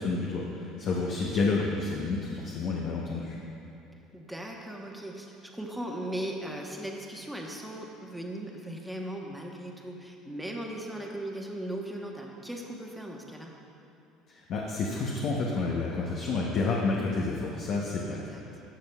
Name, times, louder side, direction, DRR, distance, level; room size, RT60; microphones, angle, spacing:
voice 1, 0.0-3.4 14.3-18.6, left 3 dB, 55° left, -2 dB, 0.8 m, -30 dB
voice 2, 4.1-13.5 18.1-18.4, right 1 dB, 5° right, 0 dB, 1.1 m, -38 dB
12.0 x 7.0 x 2.3 m, 2.8 s
supercardioid pair, 85°, 0 cm